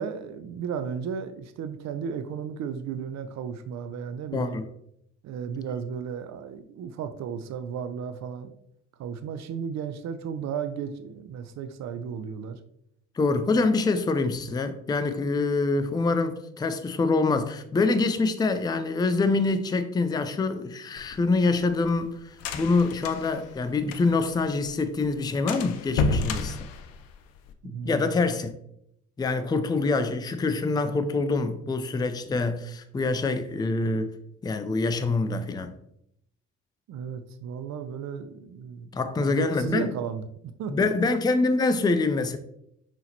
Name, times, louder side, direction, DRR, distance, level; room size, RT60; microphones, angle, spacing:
voice 1, 0.0-4.6 5.2-8.5 9.0-12.6 27.6-28.1 36.9-40.3 40.6-40.9, right 7 dB, 50° right, 0.5 m, -34 dB
voice 2, 4.3-4.6 13.2-26.6 27.9-28.5 29.2-34.1 34.4-35.7 38.9-39.9 40.7-42.4, left 3 dB, 10° left, 0.4 m, -25 dB
sound 1, 21.0-24.4 24.7-24.8 25.0-25.2 25.5-27.5, left 4 dB, 70° left, 0.5 m, -30 dB
5.5 x 3.0 x 2.8 m
hypercardioid pair, 50°, 37 cm